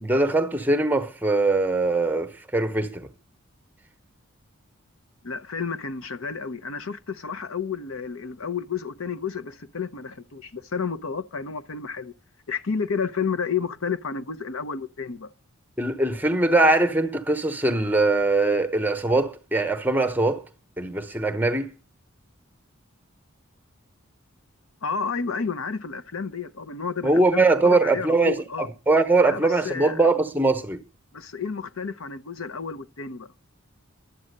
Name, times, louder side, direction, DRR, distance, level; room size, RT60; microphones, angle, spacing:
voice 1, 0.0-3.1 15.8-20.4 20.8-21.7 27.0-30.8, right 2 dB, 10° right, 0.9 m, -22 dB
voice 2, 5.2-12.1 12.5-15.3 24.8-28.7 29.3-30.1 31.1-33.3, left 5 dB, 75° left, 0.8 m, -31 dB
12.0 x 8.6 x 6.6 m
head